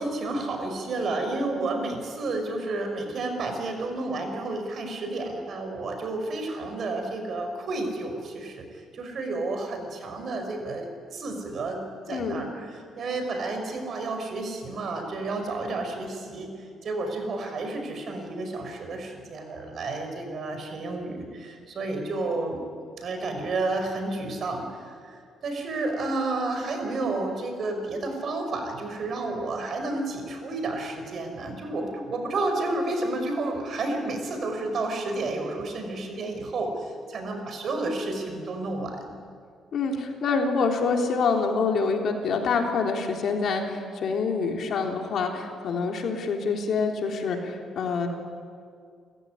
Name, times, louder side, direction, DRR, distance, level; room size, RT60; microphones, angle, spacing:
voice 1, 0.0-22.6 23.0-39.2, right 2 dB, 55° right, 5 dB, 5.3 m, -31 dB
voice 2, 12.1-12.5 39.7-48.1, left 4 dB, 65° left, 2 dB, 3.6 m, -26 dB
29.5 x 15.0 x 10.0 m, 2.2 s
cardioid pair, 90°, 0 cm